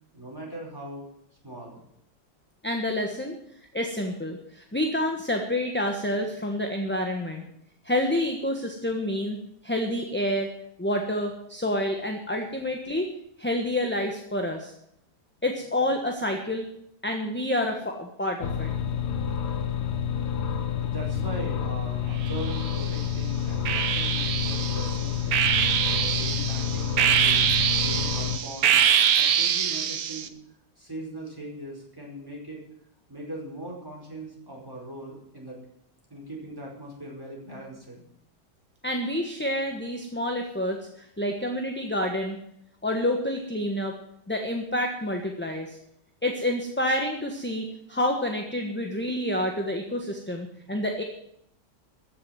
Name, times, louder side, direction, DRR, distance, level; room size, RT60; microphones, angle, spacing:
voice 1, 0.1-1.1 1.4-1.8 20.8-25.4 25.9-28.7 29.1-30.3 30.8-32.7 33.1-35.6 36.1-38.0, right 1 dB, 10° right, -2 dB, 5.1 m, -40 dB
voice 2, 2.6-3.4 3.7-7.4 7.8-9.4 9.6-10.5 10.8-13.1 13.4-14.7 15.4-16.7 17.0-18.7 38.8-42.4 42.8-43.9 44.3-45.8 46.2-51.0, left 1 dB, 5° left, 2 dB, 1.1 m, -28 dB
sound 1, 18.4-28.4, left 8 dB, 75° left, 1.7 m, -29 dB
sound 2, 22.3-23.0 23.7-30.3, right 8 dB, 65° right, 1.3 m, -24 dB
14.5 x 7.1 x 9.4 m, 0.74 s
omnidirectional pair, 1.8 m